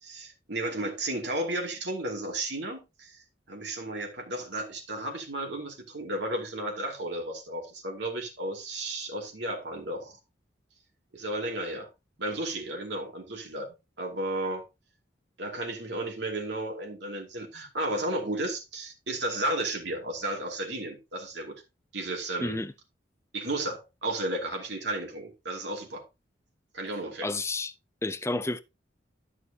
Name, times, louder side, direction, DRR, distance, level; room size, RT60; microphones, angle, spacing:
voice 1, 0.0-10.2 11.1-11.9 12.2-14.6 15.4-21.6 21.9-22.6 23.3-26.0 26.7-27.3, right 1 dB, 70° right, 2.6 m, -33 dB
voice 2, 22.4-22.7 27.2-27.7 28.0-28.6, left 2 dB, 15° left, 0.5 m, -30 dB
12.5 x 6.3 x 2.8 m
head